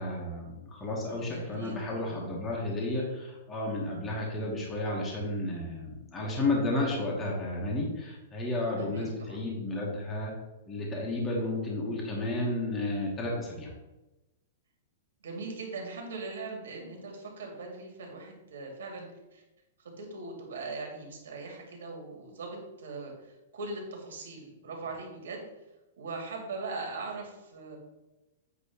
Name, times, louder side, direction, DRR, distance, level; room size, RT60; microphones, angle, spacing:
voice 1, 0.0-10.3 10.7-13.7, left 2 dB, 10° left, -3 dB, 1.0 m, -32 dB
voice 2, 1.1-1.8 2.0-2.3 8.8-9.4 15.2-19.4 19.8-25.4 26.0-27.8, right 3 dB, 85° right, 1 dB, 2.4 m, -40 dB
8.3 x 3.0 x 5.9 m, 1.0 s
supercardioid pair, 180°, 0 cm